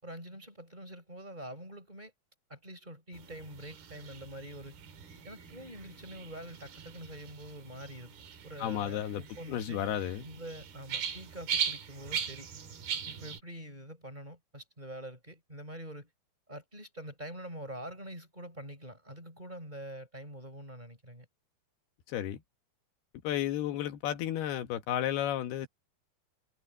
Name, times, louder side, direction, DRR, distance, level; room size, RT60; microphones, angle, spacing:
voice 1, 0.0-2.1 2.5-4.8 5.2-8.2 8.4-9.8 10.2-12.5 13.1-16.1 16.5-21.3, right 1 dB, 10° right, 5.7 m, -45 dB
sound 1, 3.1-13.4, right 7 dB, 70° right, 4.6 m, -40 dB
voice 2, 8.6-9.2 9.5-10.3 22.1-22.4 23.2-25.7, left 11 dB, 80° left, 3.3 m, -32 dB
omnidirectional pair, 4.5 m